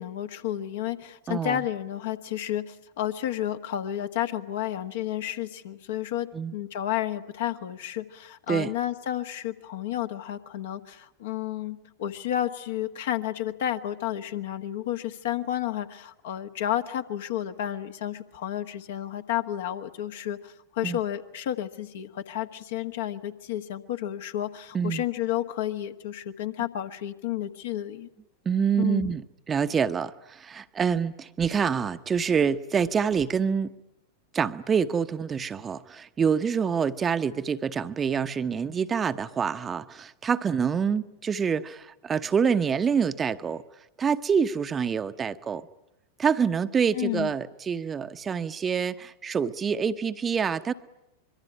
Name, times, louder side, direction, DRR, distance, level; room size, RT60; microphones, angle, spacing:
voice 1, 0.0-28.1 28.8-29.1 46.9-47.3, left 12 dB, 55° left, 7 dB, 1.5 m, -31 dB
voice 2, 1.3-1.6 6.3-6.5 8.5-8.7 20.8-21.0 24.7-25.0 28.4-33.7 34.3-43.6 44.0-45.7 46.2-50.7, right 6 dB, 20° right, 10 dB, 0.9 m, -26 dB
25.5 x 23.5 x 9.9 m, 0.86 s
figure-of-eight pair, 90°, 0 cm